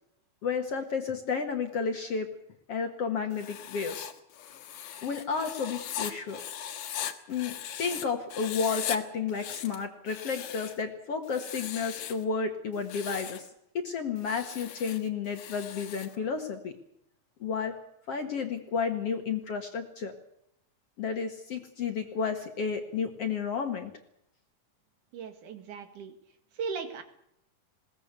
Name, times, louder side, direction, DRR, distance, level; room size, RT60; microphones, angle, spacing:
voice 1, 0.4-2.3 2.7-4.1 5.0-6.4 7.3-13.5 13.7-16.7 17.4-17.8 18.1-20.1 21.0-23.9, left 5 dB, 50° left, 5 dB, 2.2 m, -32 dB
Writing, 3.3-8.1 8.3-9.0 9.3-10.8 11.3-12.2 12.7-13.5 14.2-16.2, left 9 dB, 70° left, 2.9 m, -39 dB
voice 2, 25.1-26.2 26.5-27.0, right 5 dB, 65° right, 7 dB, 3.1 m, -37 dB
21.0 x 17.5 x 8.3 m, 0.76 s
omnidirectional pair, 4.2 m